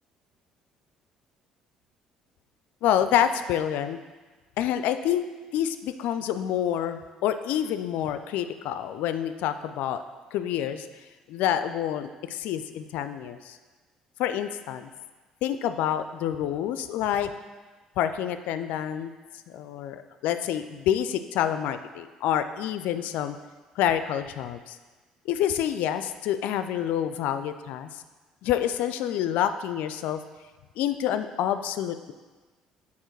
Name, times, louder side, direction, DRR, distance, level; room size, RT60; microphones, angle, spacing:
voice 1, 2.8-4.0 4.6-5.2 5.5-10.0 10.3-10.9 11.3-13.6 14.2-14.9 15.4-17.3 18.0-19.1 19.5-23.4 23.8-24.8 25.3-28.0 28.4-30.2 30.8-32.1, left 10 dB, 65° left, 10 dB, 0.3 m, -27 dB
7.1 x 4.4 x 4.6 m, 1.3 s
hypercardioid pair, 55°, 3 cm